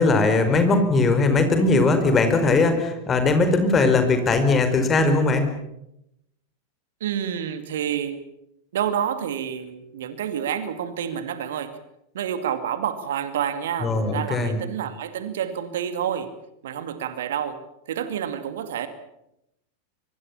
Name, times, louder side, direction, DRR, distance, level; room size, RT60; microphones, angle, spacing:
voice 1, 0.0-5.5 13.8-14.6, left 3 dB, 20° left, 8 dB, 4.9 m, -19 dB
voice 2, 7.0-8.2 8.7-11.8 12.1-16.3 16.6-17.6 17.9-18.9, right 9 dB, 60° right, 10 dB, 2.3 m, -28 dB
24.5 x 24.0 x 7.3 m, 0.82 s
figure-of-eight pair, 90°, 0 cm